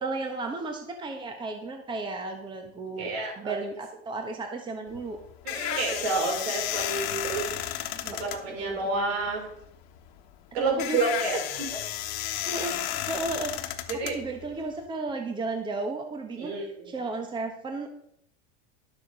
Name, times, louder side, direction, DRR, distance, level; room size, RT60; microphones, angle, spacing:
voice 1, 0.0-3.1 3.4-5.2 7.9-9.2 10.6-11.1 12.5-12.8 13.1-13.6 14.0-17.9, right 3 dB, 15° right, 4 dB, 1.2 m, -34 dB
voice 2, 3.0-3.5 5.4-7.8 8.2-9.5 10.5-11.4 13.9-14.2 16.4-16.7, right 3 dB, 70° right, 0 dB, 5.6 m, -29 dB
sound 1, 4.9-14.8, left 12 dB, 65° left, 1.5 m, -33 dB
12.0 x 7.4 x 5.5 m, 0.73 s
supercardioid pair, 135°, 33 cm